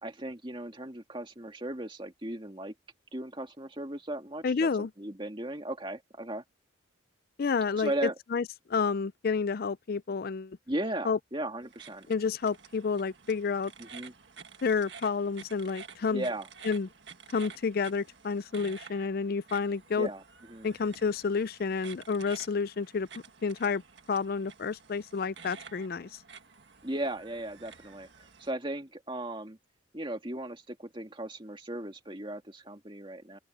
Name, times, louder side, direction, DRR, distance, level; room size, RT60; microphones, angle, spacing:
voice 1, 0.0-2.7 3.1-6.4 7.8-8.1 10.7-12.1 13.8-14.1 16.1-16.5 20.0-20.2 20.5-20.7 26.8-29.6 29.9-33.4, right 1 dB, 25° right, 2.2 m, -36 dB
voice 2, 4.4-4.9 7.4-10.6 11.0-11.2 12.1-13.7 14.6-16.3 16.6-16.9 17.3-20.1 20.6-23.1 23.4-23.8 24.1-26.1, left 5 dB, 45° left, 0.4 m, -30 dB
sound 1, 11.6-28.5, right 6 dB, 60° right, 1.8 m, -51 dB
open air
head